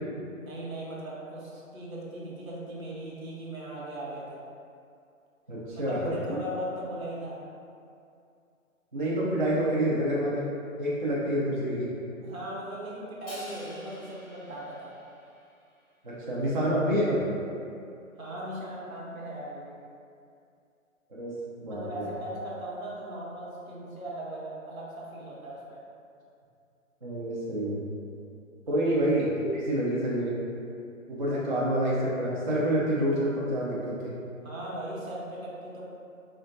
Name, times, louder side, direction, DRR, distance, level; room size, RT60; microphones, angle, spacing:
voice 1, 0.4-4.4 5.8-7.4 12.2-14.9 18.2-19.8 21.7-25.8 28.7-28.8 31.3-31.4 34.4-35.8, right 1 dB, 80° right, -5 dB, 1.0 m, -38 dB
voice 2, 5.5-6.4 8.9-10.5 10.8-11.9 16.0-17.2 21.1-22.0 27.0-27.8 28.7-30.3 31.1-34.1, right 1 dB, 35° right, -7 dB, 0.4 m, -28 dB
Crash cymbal, 13.3-15.6, left 1 dB, 5° left, 0.6 m, -48 dB
3.7 x 2.2 x 2.5 m, 2.5 s
figure-of-eight pair, 145°, 41 cm